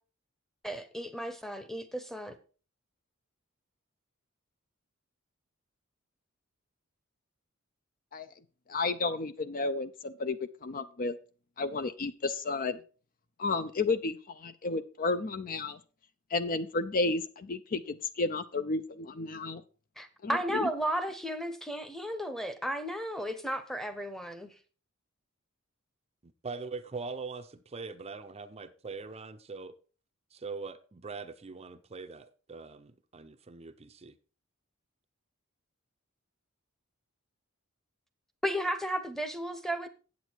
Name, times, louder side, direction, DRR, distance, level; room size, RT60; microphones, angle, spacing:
voice 1, 0.6-2.3 20.0-24.5 38.4-39.9, equal, ahead, 0.9 m, -34 dB
voice 2, 8.7-10.4 10.6-11.1 11.6-12.8 13.4-14.2 14.4-15.8 16.3-19.6 20.2-20.7, left 3 dB, 40° left, 0.5 m, -32 dB
voice 3, 26.2-29.7 30.3-34.1, right 4 dB, 30° right, 0.6 m, -42 dB
8.3 x 8.1 x 4.5 m
head